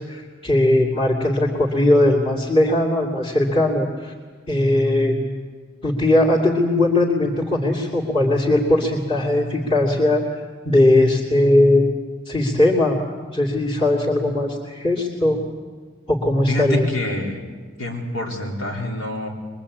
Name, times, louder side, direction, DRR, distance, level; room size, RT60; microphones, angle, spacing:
voice 1, 0.1-4.1 4.5-5.2 5.8-10.2 10.6-11.9 12.2-13.0 13.3-15.4 16.1-16.8, left 1 dB, 30° left, -2 dB, 2.8 m, -19 dB
voice 2, 16.5-17.4 17.8-19.3, left 1 dB, 85° left, -1 dB, 4.5 m, -27 dB
23.5 x 23.0 x 8.7 m, 1.5 s
head